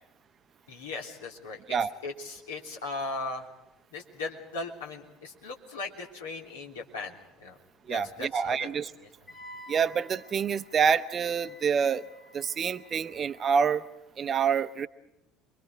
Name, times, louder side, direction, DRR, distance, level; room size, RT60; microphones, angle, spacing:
voice 1, 0.7-1.6 2.0-3.5 3.9-7.6 7.8-8.7 9.0-9.1, left 3 dB, 75° left, -1 dB, 3.4 m, -38 dB
voice 2, 7.9-8.9 9.7-12.0 12.3-13.8 14.2-14.9, right 6 dB, 35° right, 12 dB, 1.0 m, -27 dB
Wind instrument woodwind instrument, 9.3-13.9, left 1 dB, 30° left, 2.7 m, -51 dB
28.5 x 23.5 x 4.7 m, 0.89 s
figure-of-eight pair, 60°, 0 cm